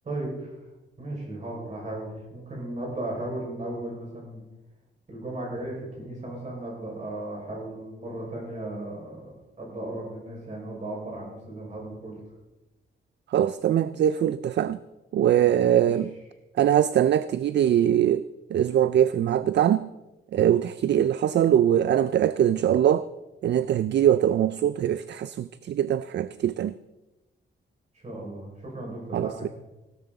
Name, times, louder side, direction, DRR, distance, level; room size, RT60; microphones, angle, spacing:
voice 1, 0.0-0.5 1.0-4.4 5.1-12.1 27.9-29.3, right 1 dB, 35° right, 5.6 m, -36 dB
voice 2, 13.3-14.8 15.1-16.1 16.6-18.3 18.5-19.9 20.3-23.1 23.4-26.7 29.1-29.5, right 10 dB, 60° right, 0.4 m, -22 dB
16.5 x 12.5 x 4.0 m
wide cardioid pair, 175°, 20 cm